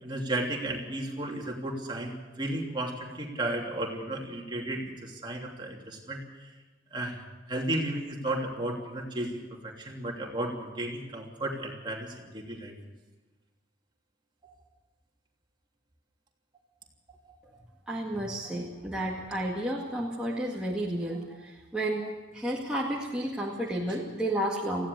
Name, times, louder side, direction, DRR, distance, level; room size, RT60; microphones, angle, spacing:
voice 1, 0.0-6.2 6.9-7.2 7.5-12.7 14.4-14.5, right 1 dB, 25° right, 0 dB, 3.1 m, -34 dB
voice 2, 17.9-24.9, right 1 dB, 5° right, -5 dB, 2.0 m, -32 dB
20.0 x 16.0 x 8.3 m, 1.2 s
head